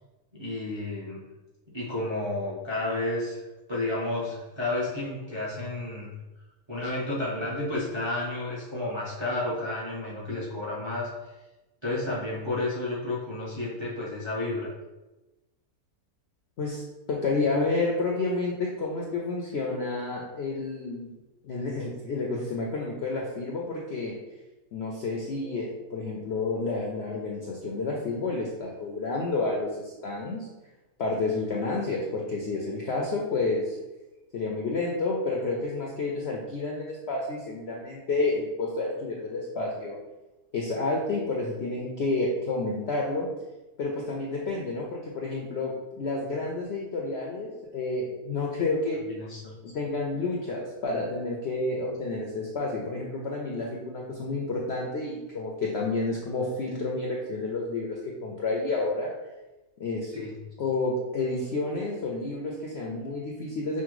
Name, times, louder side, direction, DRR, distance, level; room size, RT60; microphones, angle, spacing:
voice 1, 0.3-1.2 1.7-3.4 3.7-6.1 6.7-11.1 11.8-14.7 49.2-49.5 60.1-60.3, left 2 dB, 25° right, -6 dB, 0.6 m, -31 dB
voice 2, 17.1-21.1 21.4-24.1 24.7-30.5 31.0-33.8 34.3-40.0 40.5-43.3 43.8-49.0 49.6-59.1 59.8-60.1 60.6-63.8, left 3 dB, 70° left, -2 dB, 0.6 m, -30 dB
5.6 x 2.1 x 3.0 m, 1.1 s
omnidirectional pair, 1.6 m